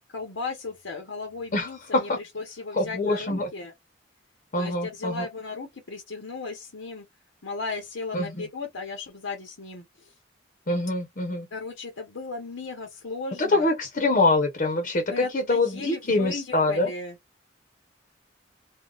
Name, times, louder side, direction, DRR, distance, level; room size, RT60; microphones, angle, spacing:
voice 1, 0.1-3.7 4.6-7.1 7.4-10.1 11.5-13.7 15.1-17.2, left 4 dB, 90° left, 0.9 m, -36 dB
voice 2, 1.5-2.2 2.7-3.5 4.5-5.3 8.1-8.4 10.7-11.5 13.4-16.9, left 2 dB, 45° left, 0.8 m, -25 dB
3.7 x 2.3 x 2.4 m
head